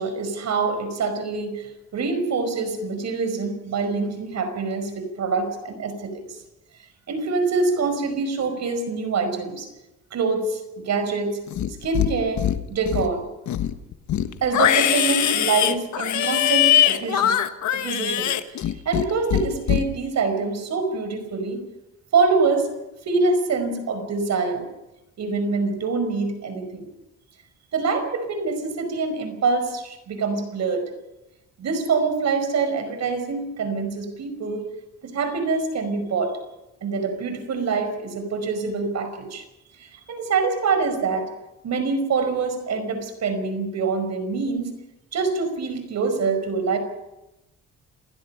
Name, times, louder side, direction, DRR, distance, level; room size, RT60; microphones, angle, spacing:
voice 1, 0.0-6.4 7.1-9.7 10.1-11.4 11.8-13.3 14.4-17.4 17.7-21.6 22.1-22.7 23.1-24.7 25.2-26.9 27.7-30.9 31.6-34.7 35.0-36.4 36.8-39.4 39.8-41.3 41.6-44.7 45.1-46.8, right 4 dB, 65° right, 8 dB, 5.3 m, -25 dB
Livestock farm animals working animals, 11.5-12.1 12.4-13.1 13.5-19.1 19.3-19.8, left 11 dB, 70° left, 1.4 m, -21 dB
28.5 x 16.0 x 5.8 m, 0.96 s
cardioid pair, 90°, 30 cm